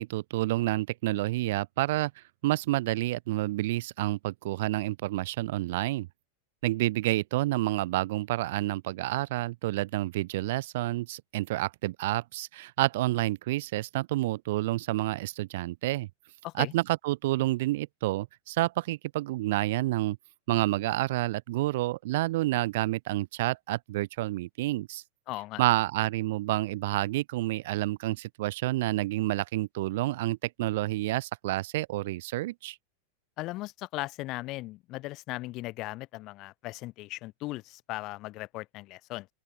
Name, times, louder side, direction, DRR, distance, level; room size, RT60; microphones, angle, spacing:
voice 1, 0.0-6.1 6.6-16.1 16.6-20.2 20.5-25.0 25.6-32.8, right 17 dB, 55° right, 0.3 m, -29 dB
voice 2, 25.3-25.6 33.4-39.3, left 19 dB, 40° left, 0.5 m, -38 dB
open air
figure-of-eight pair, 90°, 0 cm